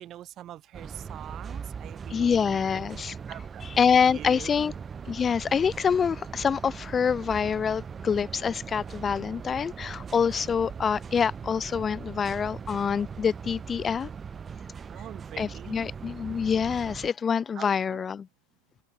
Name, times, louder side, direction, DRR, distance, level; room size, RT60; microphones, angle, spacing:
voice 1, 0.0-2.6 3.2-4.7 14.9-15.9 17.5-18.1, right 12 dB, 35° right, 4.1 m, -44 dB
sound 1, 0.7-17.1, right 6 dB, 20° right, 3.9 m, -40 dB
voice 2, 2.1-3.2 3.8-4.7 5.1-14.1 15.4-18.3, left 7 dB, 20° left, 0.8 m, -26 dB
open air
hypercardioid pair, 125°, 0 cm